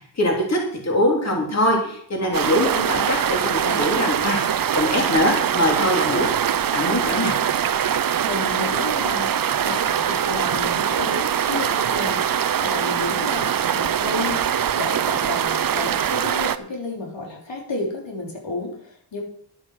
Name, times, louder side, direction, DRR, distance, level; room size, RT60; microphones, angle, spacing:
voice 1, 0.2-6.3 6.7-7.4, left 1 dB, 35° left, -1 dB, 3.2 m, -22 dB
sound 1, 2.3-16.6, right 9 dB, 50° right, 0.6 m, -23 dB
voice 2, 8.2-9.3 9.6-19.2, left 2 dB, 75° left, -1 dB, 3.4 m, -31 dB
11.5 x 8.4 x 6.2 m, 0.63 s
wide cardioid pair, 125°, 44 cm